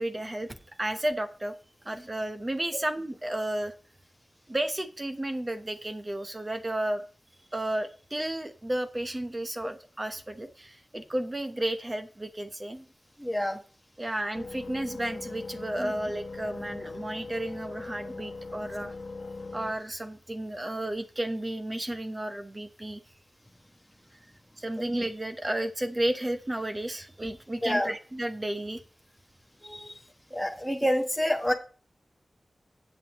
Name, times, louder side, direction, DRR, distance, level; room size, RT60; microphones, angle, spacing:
voice 1, 0.0-1.5 1.8-3.7 4.5-7.0 7.5-12.8 14.0-18.9 19.5-23.0 24.6-28.8, right 1 dB, 25° right, 8 dB, 1.0 m, -32 dB
voice 2, 13.2-13.6 15.8-15.9 27.6-27.9 29.6-30.0 30.3-31.5, equal, ahead, 3 dB, 1.2 m, -28 dB
sound 1, 14.3-19.7, left 3 dB, 65° left, 1.0 m, -40 dB
15.0 x 8.0 x 3.0 m, 0.40 s
wide cardioid pair, 110°, 0 cm